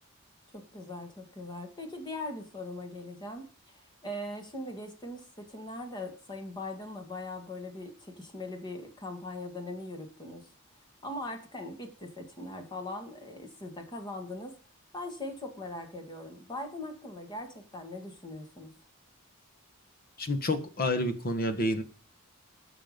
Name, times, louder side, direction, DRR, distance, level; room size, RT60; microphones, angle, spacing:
voice 1, 0.5-10.5 11.0-14.5 14.9-18.7, left 1 dB, 20° left, 4 dB, 2.2 m, -40 dB
voice 2, 20.2-21.8, left 1 dB, 45° left, 8 dB, 1.5 m, -29 dB
15.0 x 6.2 x 5.3 m, 0.40 s
head